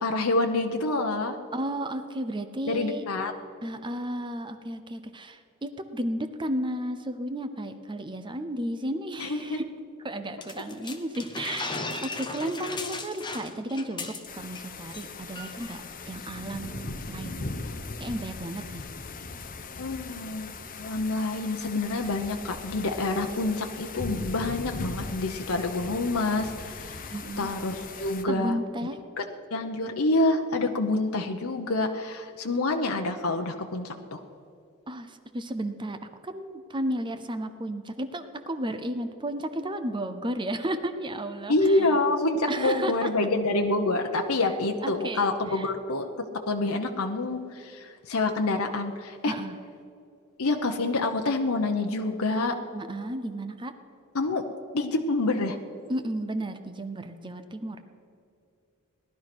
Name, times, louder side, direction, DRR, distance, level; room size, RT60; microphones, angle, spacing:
voice 1, 0.0-1.4 2.7-3.3 9.2-9.6 11.4-11.6 12.4-12.5 12.8-13.0 19.8-28.6 29.2-29.3 29.5-34.2 41.5-46.1 46.5-49.3 50.4-52.5 54.1-54.4 54.7-55.6, left 2 dB, 70° left, 4 dB, 1.0 m, -27 dB
voice 2, 1.5-3.0 3.6-9.6 10.0-15.8 16.1-17.5 18.0-18.9 27.1-27.5 28.3-29.0 34.9-36.0 36.2-41.9 42.5-43.1 44.4-44.5 44.8-45.2 45.5-45.7 49.3-49.6 52.7-53.7 55.9-57.8, right 1 dB, 20° right, 9 dB, 0.7 m, -33 dB
sound 1, 10.4-14.6 14.9-15.1 15.4-15.7, left 3 dB, 20° left, 1.2 m, -36 dB
sound 2, 14.3-28.2, left 3 dB, 40° left, 0.9 m, -39 dB
18.0 x 11.5 x 6.1 m, 2.6 s
head